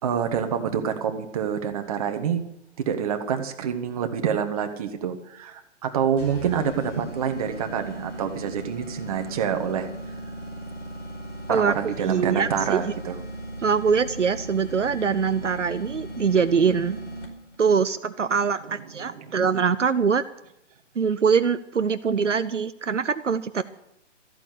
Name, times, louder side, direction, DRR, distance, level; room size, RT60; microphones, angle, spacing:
voice 1, 0.0-2.4 2.8-9.9 11.5-13.1 19.1-19.3, right 8 dB, 30° right, 7 dB, 1.3 m, -27 dB
sound 1, 6.2-17.6, right 1 dB, 70° left, 5.0 m, -37 dB
voice 2, 11.5-12.9 13.6-17.0 17.6-20.2 21.0-23.6, right 6 dB, 70° right, 12 dB, 0.8 m, -23 dB
14.0 x 8.8 x 8.3 m, 0.80 s
figure-of-eight pair, 140°, 37 cm